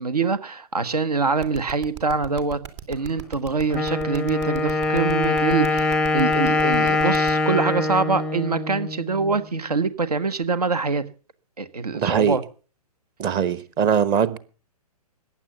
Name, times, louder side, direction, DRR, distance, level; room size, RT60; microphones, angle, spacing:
voice 1, 0.0-2.6 2.9-11.0 11.6-12.4, right 4 dB, 75° right, 1.4 m, -24 dB
sound 1, 1.4-7.3, right 9 dB, 45° right, 2.6 m, -37 dB
Wind instrument woodwind instrument, 3.7-9.4, left 2 dB, 5° left, 0.6 m, -23 dB
voice 2, 11.9-12.4 13.2-14.4, right 8 dB, 20° right, 1.0 m, -21 dB
15.0 x 10.0 x 7.0 m
figure-of-eight pair, 125°, 20 cm